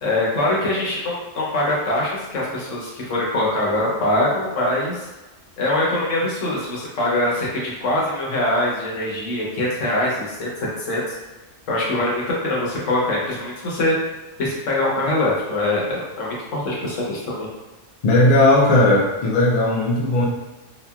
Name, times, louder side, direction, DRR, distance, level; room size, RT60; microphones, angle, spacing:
voice 1, 0.0-5.1 5.6-10.5 10.8-11.0 11.7-13.9 14.4-17.5, left 1 dB, 75° left, -5 dB, 1.1 m, -23 dB
voice 2, 18.0-20.2, left 1 dB, 50° left, -4 dB, 0.4 m, -16 dB
2.8 x 2.4 x 2.3 m, 1.1 s
omnidirectional pair, 1.3 m